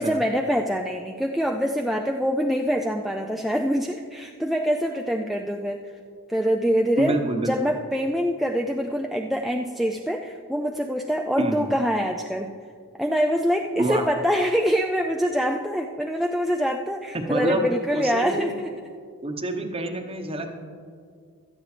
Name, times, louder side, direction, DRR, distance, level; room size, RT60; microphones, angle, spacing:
voice 1, 0.0-5.9 6.3-12.5 13.0-18.7, equal, ahead, 1 dB, 0.3 m, -25 dB
voice 2, 7.0-7.7 11.4-11.7 13.8-14.0 17.3-18.5 19.2-20.5, right 2 dB, 25° right, 5 dB, 1.0 m, -27 dB
17.0 x 12.5 x 3.3 m, 2.1 s
head